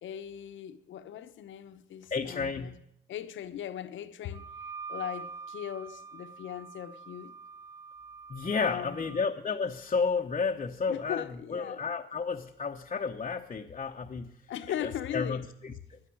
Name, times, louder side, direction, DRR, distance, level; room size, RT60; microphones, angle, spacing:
voice 1, 0.0-2.7 3.1-4.5 4.9-7.4 8.6-9.1 10.9-11.8 14.5-15.5, left 10 dB, 75° left, 1.0 m, -39 dB
voice 2, 2.1-2.8 8.3-14.3 14.8-16.0, left 5 dB, 35° left, 0.9 m, -32 dB
Wind instrument woodwind instrument, 4.3-9.3, right 5 dB, 15° right, 0.6 m, -45 dB
11.5 x 9.8 x 9.5 m
cardioid pair, 90°, 20 cm